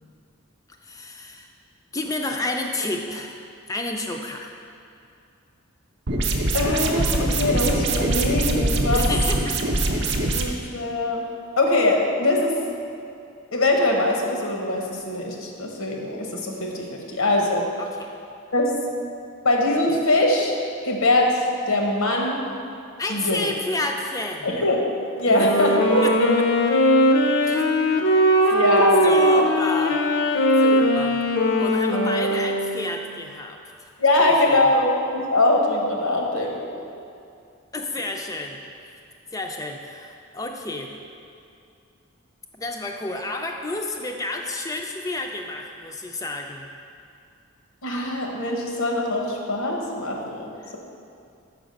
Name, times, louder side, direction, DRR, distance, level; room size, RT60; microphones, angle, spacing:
voice 1, 0.8-1.5 1.9-3.4 3.7-4.5 8.9-9.6 17.8-18.1 23.0-24.5 25.4-25.5 26.0-26.1 27.5-27.6 28.4-33.9 34.2-34.6 37.7-39.0 39.3-40.9 42.5-46.7 50.6-50.8, left 2 dB, 15° left, 3 dB, 0.3 m, -31 dB
sound 1, 6.1-10.5, right 2 dB, 50° right, 0.6 m, -23 dB
voice 2, 6.5-9.1 10.3-11.3 11.6-12.6 13.5-17.7 18.5-18.8 19.4-22.5 23.1-23.5 24.4-24.8 25.2-26.3 28.5-29.5 34.0-35.0 35.3-36.6 47.8-50.8, left 2 dB, 85° left, 1 dB, 1.0 m, -22 dB
Wind instrument woodwind instrument, 25.2-32.9, equal, 60° left, 0.6 m, -20 dB
6.0 x 4.9 x 5.1 m, 2.5 s
head